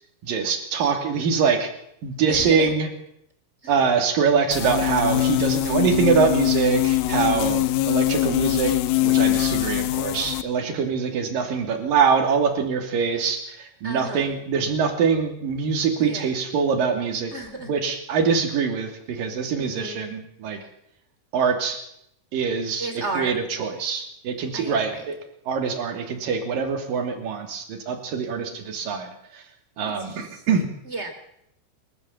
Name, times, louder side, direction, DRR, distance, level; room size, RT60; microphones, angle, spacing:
voice 1, 0.2-1.7 2.0-2.9 3.7-8.7 9.0-17.3 17.6-20.6 21.3-21.8 22.3-22.9 23.2-25.2 25.5-29.4 29.8-30.7, right 6 dB, 60° right, 4 dB, 4.3 m, -24 dB
voice 2, 2.3-2.7 3.6-3.7 13.8-14.4 16.0-16.3 17.3-17.7 19.5-20.0 22.8-23.3 24.5-25.1 30.0-30.4 30.8-31.1, right 2 dB, 15° right, 6 dB, 3.2 m, -33 dB
sound 1, 4.5-10.4, left 15 dB, 75° left, 2.7 m, -22 dB
28.5 x 14.0 x 7.4 m, 0.75 s
omnidirectional pair, 4.7 m